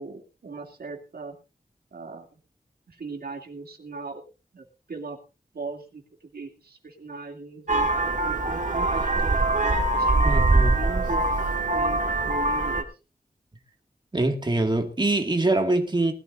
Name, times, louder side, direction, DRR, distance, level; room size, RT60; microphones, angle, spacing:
voice 1, 0.0-1.4 1.9-2.4 2.9-4.2 4.5-5.2 5.5-11.2 11.7-12.9, right 4 dB, 85° right, 2.7 m, -39 dB
Vehicle horn car horn honking, 7.7-12.8, right 2 dB, 55° right, 2.1 m, -23 dB
voice 2, 10.2-10.8 14.1-16.1, right 2 dB, 30° right, 2.0 m, -24 dB
20.5 x 13.0 x 2.6 m
wide cardioid pair, 80°, 16 cm